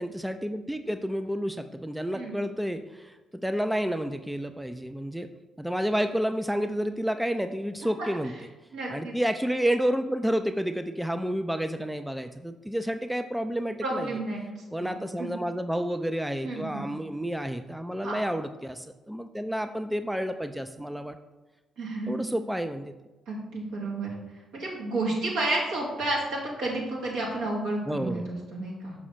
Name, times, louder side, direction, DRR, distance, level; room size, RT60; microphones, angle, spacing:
voice 1, 0.0-5.3 5.6-8.3 8.9-14.1 14.7-21.2 22.1-22.9 27.9-28.3, equal, 5° right, 8 dB, 0.4 m, -30 dB
voice 2, 8.7-9.1 13.8-14.4 14.8-15.3 16.4-16.9 18.0-18.2 21.8-22.2 23.3-24.1 24.5-28.9, right 2 dB, 65° right, -4 dB, 2.1 m, -31 dB
6.2 x 5.9 x 3.8 m, 1.2 s
figure-of-eight pair, 40°, 0 cm